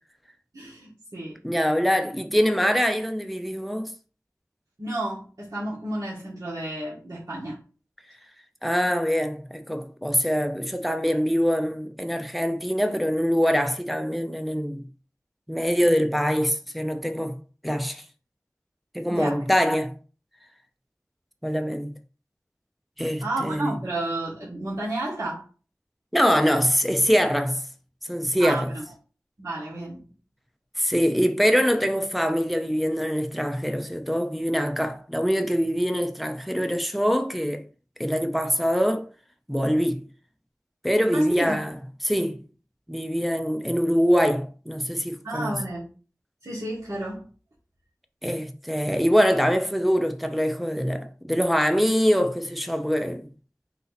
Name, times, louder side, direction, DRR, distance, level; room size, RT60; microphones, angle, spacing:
voice 1, 0.5-1.4 4.8-7.6 19.1-19.4 23.2-25.4 28.4-28.8 29.4-30.1 41.1-41.6 45.2-45.9 46.4-47.3, right 1 dB, 85° right, 1.5 m, -31 dB
voice 2, 1.4-3.9 8.6-14.9 15.5-17.4 17.6-18.0 18.9-19.9 21.4-21.9 23.0-23.7 26.1-27.7 28.1-28.7 30.8-37.6 38.0-39.1 39.5-40.0 40.8-42.4 42.9-45.5 48.2-53.3, equal, ahead, 0.6 m, -24 dB
4.0 x 2.8 x 4.0 m
wide cardioid pair, 40°, 6 cm